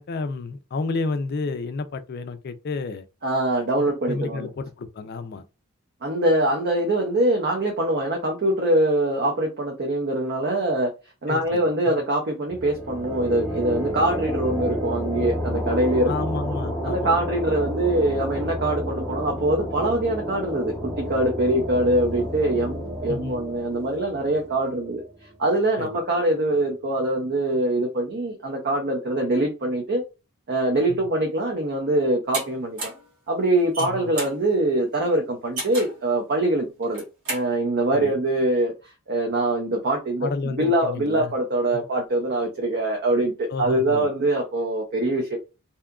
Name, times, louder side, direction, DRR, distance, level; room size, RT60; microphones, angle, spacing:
voice 1, 0.0-3.0 3.8-5.4 11.3-11.6 11.9-12.0 16.1-17.2 23.1-23.4 25.8-25.9 30.9-31.1 33.8-34.1 37.9-38.2 40.2-41.3 41.7-41.8 43.5-44.1, left 3 dB, 45° left, 0.3 m, -31 dB
voice 2, 3.2-4.5 6.0-10.9 11.2-16.1 16.8-25.0 25.4-30.0 30.5-32.9 33.3-37.0 37.3-38.7 39.1-45.4, right 1 dB, 45° right, 0.6 m, -23 dB
sound 1, 12.5-25.9, left 1 dB, ahead, 0.8 m, -31 dB
sound 2, 32.3-32.4 32.8-33.1 33.6-34.4 35.6-36.0 36.8-37.5, right 2 dB, 80° right, 1.2 m, -31 dB
2.7 x 2.3 x 2.3 m
head